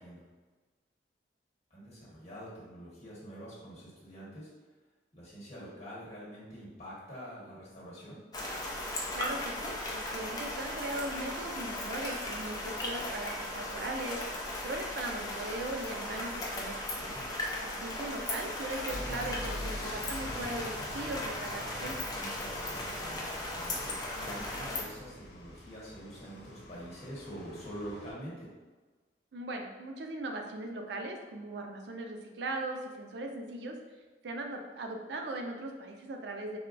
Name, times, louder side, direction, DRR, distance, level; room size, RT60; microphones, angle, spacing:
voice 1, 1.7-4.5 5.1-8.2 17.0-17.3 22.2-28.5, equal, 40° left, -7 dB, 1.3 m, -46 dB
sound 1, 8.3-24.8, left 1 dB, 20° left, 0.4 m, -37 dB
voice 2, 9.1-14.2 14.6-16.7 17.6-22.0 29.3-33.7 34.2-36.6, right 2 dB, 75° right, 3 dB, 0.4 m, -39 dB
sound 2, 18.9-28.1, left 1 dB, 70° left, 0.6 m, -45 dB
4.2 x 2.2 x 2.4 m, 1.3 s
head